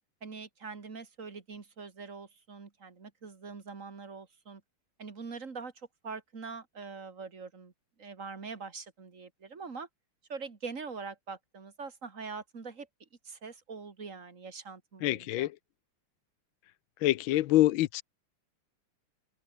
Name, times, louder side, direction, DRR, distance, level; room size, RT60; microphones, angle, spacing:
voice 1, 0.2-4.6 5.0-7.7 8.0-9.9 10.3-12.9 13.2-15.5, right 4 dB, 35° right, 2.4 m, -43 dB
voice 2, 15.0-15.5 17.0-18.0, left 15 dB, 75° left, 1.4 m, -25 dB
omnidirectional pair, 2.4 m